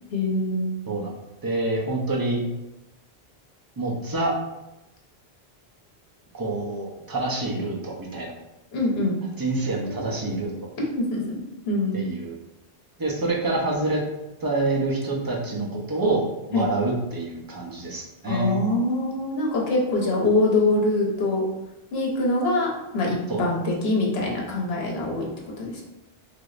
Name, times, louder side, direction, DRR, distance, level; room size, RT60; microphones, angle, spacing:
voice 1, 0.1-0.7 8.7-9.2 10.8-11.4 11.7-12.0 16.5-16.7 18.3-21.4 21.9-25.3 25.6-25.8, left 2 dB, 75° left, -2 dB, 1.0 m, -24 dB
voice 2, 1.4-2.4 3.8-4.3 6.3-8.3 9.4-10.7 11.9-12.3 13.0-14.0 14.4-16.2 16.5-18.6 23.3-23.4, right 2 dB, 25° right, -2 dB, 0.5 m, -27 dB
3.3 x 2.9 x 2.4 m, 0.95 s
omnidirectional pair, 1.1 m